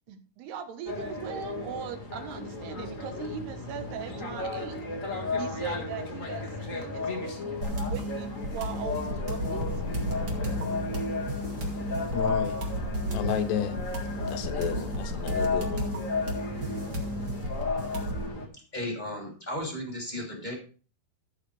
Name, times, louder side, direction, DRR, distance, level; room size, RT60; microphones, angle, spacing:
voice 1, 0.1-4.8 5.4-7.5 7.9-10.1, right 8 dB, 75° right, 8 dB, 3.2 m, -40 dB
sound 1, 0.8-18.5, left 3 dB, 45° left, 1.0 m, -34 dB
sound 2, 7.6-18.3, equal, 35° right, 1.9 m, -33 dB
sound 3, 9.4-17.2, left 3 dB, 70° left, 2.7 m, -41 dB
voice 2, 12.1-12.6 13.1-13.8 14.3-15.9, left 9 dB, 85° left, 9 dB, 3.4 m, -32 dB
voice 3, 18.5-20.5, left 1 dB, 10° left, 0 dB, 2.5 m, -35 dB
14.5 x 8.1 x 3.3 m, 0.38 s
omnidirectional pair, 4.8 m